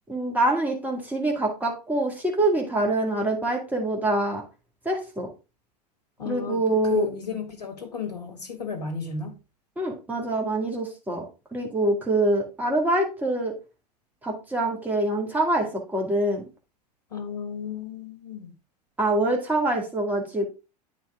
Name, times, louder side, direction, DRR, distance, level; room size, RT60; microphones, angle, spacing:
voice 1, 0.1-4.4 4.9-5.3 6.3-7.1 9.8-11.2 11.5-13.5 14.2-16.4 19.0-20.5, right 2 dB, 10° right, 2.1 m, -25 dB
voice 2, 6.2-9.4 17.1-18.5, left 6 dB, 75° left, 1.9 m, -33 dB
9.2 x 4.9 x 3.6 m
figure-of-eight pair, 80°, 21 cm